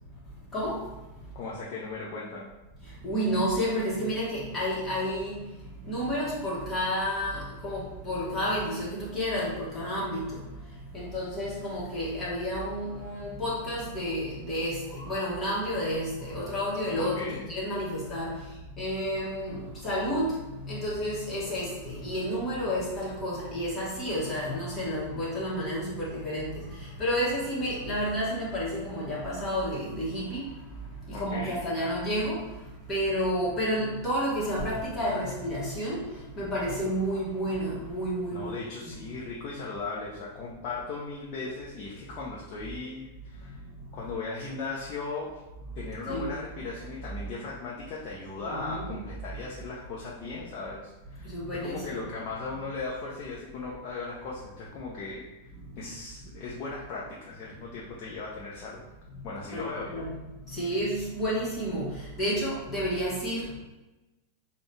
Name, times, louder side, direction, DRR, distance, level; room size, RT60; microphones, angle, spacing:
voice 1, 0.5-0.8 3.0-5.4 5.8-10.4 10.9-18.4 18.8-20.4 20.6-30.5 31.1-32.4 32.9-36.0 36.4-38.6 38.8-38.9 46.1-46.3 48.4-48.9 51.2-52.1 59.5-60.2 60.5-63.6, equal, 20° left, -7 dB, 1.3 m, -30 dB
voice 2, 1.3-2.5 17.0-17.4 31.1-31.6 38.3-43.6 43.9-45.4 45.8-55.2 55.8-58.8 59.2-60.0, left 3 dB, 40° left, -5 dB, 0.7 m, -37 dB
5.3 x 2.3 x 3.3 m, 1.0 s
figure-of-eight pair, 90°, 0 cm